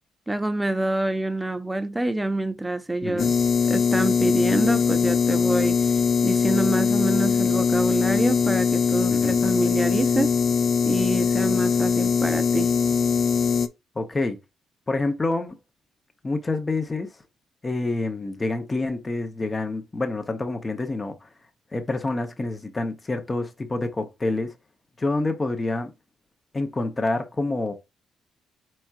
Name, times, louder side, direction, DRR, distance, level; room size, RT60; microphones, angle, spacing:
voice 1, 0.3-6.0 6.2-10.3 10.8-12.7, right 2 dB, 10° right, 0.7 m, -26 dB
voice 2, 3.0-3.3 9.1-9.5 14.0-14.4 14.9-15.6 16.2-17.1 17.6-21.3 21.7-24.5 25.0-25.9 26.5-27.7, left 2 dB, 25° left, 0.8 m, -27 dB
sound 1, 3.2-13.7, left 6 dB, 45° left, 0.5 m, -21 dB
4.5 x 4.3 x 2.4 m
cardioid pair, 90°, 0 cm